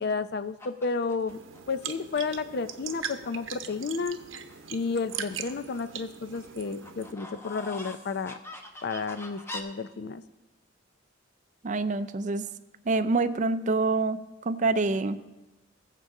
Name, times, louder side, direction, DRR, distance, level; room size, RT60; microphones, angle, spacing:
voice 1, 0.0-1.4 1.7-4.2 4.7-8.4 8.8-10.2, left 4 dB, 55° left, 12 dB, 0.5 m, -31 dB
sound 1, 0.6-1.6 2.2-2.3 2.6-3.3 3.6-4.7 5.1-6.0 6.3-9.6, left 1 dB, 15° left, 0.9 m, -44 dB
sound 2, 1.3-7.1, right 8 dB, 80° right, 0.8 m, -40 dB
voice 2, 11.6-12.4 12.9-15.2, right 3 dB, 40° right, 12 dB, 0.5 m, -26 dB
20.0 x 7.5 x 3.7 m, 1.1 s
head